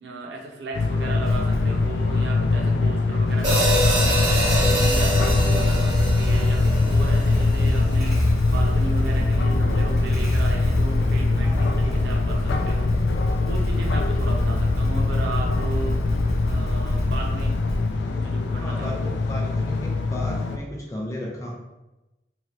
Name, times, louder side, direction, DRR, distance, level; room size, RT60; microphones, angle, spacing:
voice 1, 0.0-4.3 4.6-8.2 8.4-12.9 13.3-16.0 16.4-17.5 18.1-19.1, right 3 dB, 80° right, 0 dB, 0.7 m, -35 dB
sound 1, 0.7-20.6, left 3 dB, 75° left, 0.3 m, -23 dB
Motorcycle / Engine starting, 1.3-1.9 3.3-18.2, equal, ahead, 1.0 m, -26 dB
sound 2, 3.4-7.8, right 1 dB, 25° right, 1.2 m, -25 dB
voice 2, 11.4-12.1 18.5-21.5, equal, 20° left, -2 dB, 0.5 m, -35 dB
3.2 x 2.4 x 2.8 m, 1.0 s
head